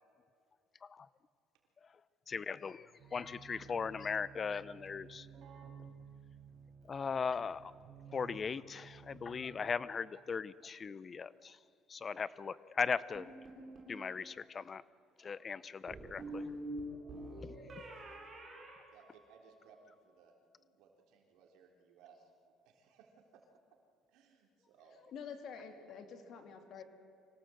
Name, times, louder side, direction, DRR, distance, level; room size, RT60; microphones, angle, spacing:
voice 1, 2.3-5.3 6.9-7.7 8.1-11.6 11.9-13.3 13.9-14.8 15.2-16.4 17.4-17.5, left 5 dB, 30° left, 18 dB, 0.6 m, -38 dB
Keyboard (musical), 3.0-9.9, right 7 dB, 55° right, 4.2 m, -55 dB
sound 1, 13.1-14.0 15.9-19.6, right 1 dB, 35° right, 7.9 m, -46 dB
voice 2, 18.9-23.1 24.1-25.0, right 5 dB, 85° right, 2 dB, 3.5 m, -63 dB
voice 3, 25.1-26.8, left 6 dB, 60° left, 5 dB, 2.8 m, -48 dB
25.0 x 17.5 x 7.8 m, 2.4 s
cardioid pair, 120°, 0 cm